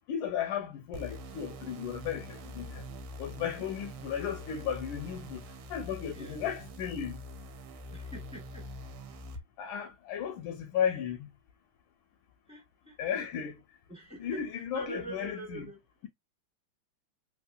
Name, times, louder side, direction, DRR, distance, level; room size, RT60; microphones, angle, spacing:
voice 1, 0.1-2.8 3.2-5.4 5.7-7.2 9.6-11.3 13.0-13.6 14.2-15.7, left 8 dB, 75° left, 1.3 m, -34 dB
sound 1, 0.9-9.4, equal, 80° right, 1.5 m, -44 dB
voice 2, 7.9-8.7 12.5-13.3 13.9-16.1, right 2 dB, 5° left, 0.6 m, -45 dB
3.5 x 3.1 x 2.3 m
omnidirectional pair, 2.4 m